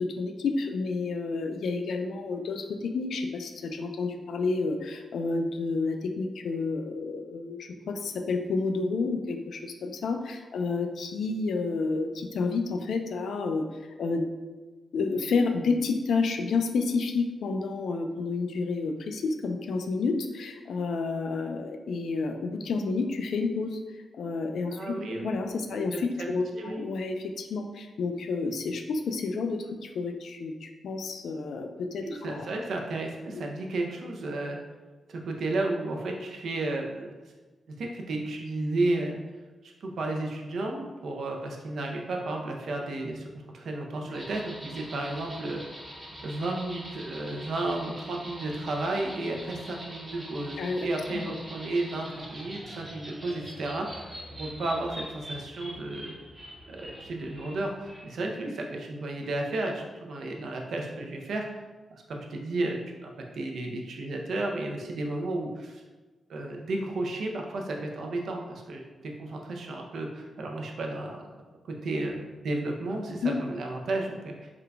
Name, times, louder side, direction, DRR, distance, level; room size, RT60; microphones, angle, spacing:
voice 1, 0.0-14.3 14.9-23.8 24.2-32.5 33.3-33.4 44.0-44.1 50.6-51.3 73.2-73.3, left 4 dB, 75° left, 5 dB, 0.3 m, -30 dB
voice 2, 24.7-25.4 25.7-26.8 32.0-34.6 35.1-37.1 37.8-39.2 39.6-45.6 46.2-56.1 56.7-61.5 62.1-65.8 66.3-71.3 71.7-74.5, right 2 dB, 65° right, 1 dB, 0.5 m, -33 dB
sound 1, 44.1-58.0, equal, 15° right, 0.7 m, -44 dB
3.7 x 2.3 x 3.3 m, 1.3 s
wide cardioid pair, 155°, 0 cm